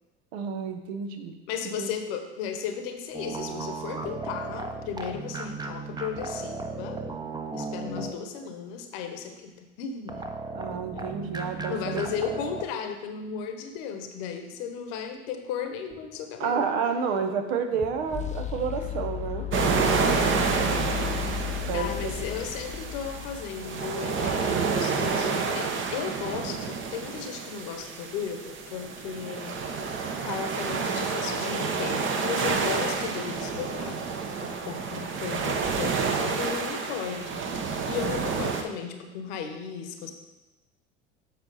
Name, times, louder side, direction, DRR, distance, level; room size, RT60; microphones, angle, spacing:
voice 1, 0.3-1.3 1.8-1.9 10.5-12.0 16.4-19.4 21.7-22.1, right 6 dB, 65° right, 6 dB, 1.0 m, -30 dB
voice 2, 1.5-7.0 7.5-10.3 11.7-16.7 21.7-37.4 37.8-40.1, left 7 dB, 60° left, 6 dB, 1.1 m, -35 dB
sound 1, 3.1-8.5 10.1-12.6, right 3 dB, 10° right, 0.8 m, -36 dB
sound 2, 15.9-24.0, left 10 dB, 20° left, 0.5 m, -35 dB
sound 3, 19.5-38.6, right 5 dB, 35° right, 1.0 m, -29 dB
7.7 x 5.9 x 4.1 m, 1.1 s
hypercardioid pair, 70°, 34 cm